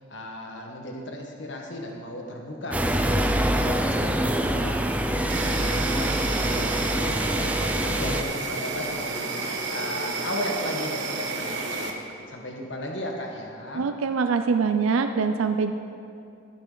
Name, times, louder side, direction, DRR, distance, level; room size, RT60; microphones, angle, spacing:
voice 1, 0.1-12.0 12.3-13.9, left 1 dB, 60° left, 1 dB, 1.3 m, -36 dB
sound 1, 2.7-8.2, right 1 dB, 5° right, 0.4 m, -25 dB
Insect, 5.3-11.9, right 3 dB, 60° right, 1.1 m, -31 dB
voice 2, 13.7-15.7, right 5 dB, 85° right, 8 dB, 0.4 m, -24 dB
12.5 x 10.5 x 3.9 m, 2.5 s
head